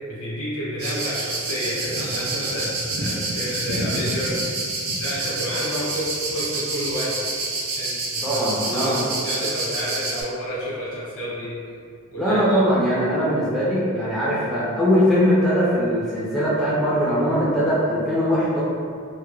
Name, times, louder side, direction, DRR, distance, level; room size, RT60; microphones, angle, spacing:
voice 1, 0.1-4.4 5.0-7.3 7.7-8.4 8.7-11.5 12.1-12.6, equal, 65° left, -8 dB, 0.9 m, -30 dB
sound 1, 0.8-10.2, right 2 dB, 70° right, 0.4 m, -28 dB
voice 2, 8.2-9.0 12.2-18.6, equal, ahead, -10 dB, 0.3 m, -21 dB
2.2 x 2.0 x 3.0 m, 2.3 s
head